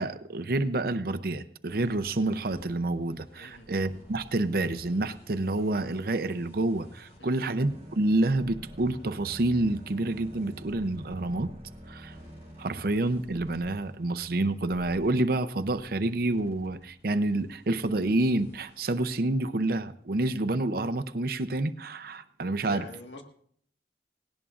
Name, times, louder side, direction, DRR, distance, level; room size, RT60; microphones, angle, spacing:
voice 1, 0.0-11.5 11.9-12.1 12.6-22.8, right 2 dB, 55° right, 10 dB, 0.6 m, -28 dB
sound 1, 1.6-19.2, equal, 40° left, 5.3 m, -54 dB
voice 2, 3.3-3.7 7.2-7.4 22.5-23.2, left 3 dB, 85° left, 3 dB, 1.7 m, -45 dB
sound 2, 7.6-13.2, equal, 35° right, 1.0 m, -46 dB
18.0 x 18.0 x 2.5 m, 0.64 s
head